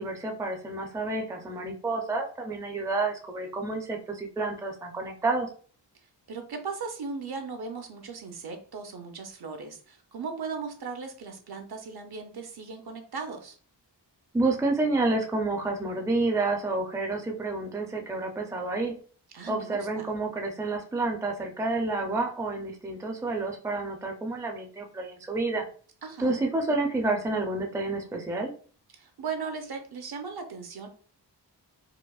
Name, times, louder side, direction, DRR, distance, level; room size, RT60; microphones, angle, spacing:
voice 1, 0.0-5.5 14.3-18.9 19.5-25.7 26.2-28.5, right 2 dB, 10° right, 2 dB, 0.4 m, -29 dB
voice 2, 6.3-13.6 19.3-20.1 26.0-26.4 28.9-30.9, right 5 dB, 60° right, 5 dB, 0.7 m, -37 dB
4.8 x 2.0 x 2.3 m, 0.43 s
wide cardioid pair, 130°, 43 cm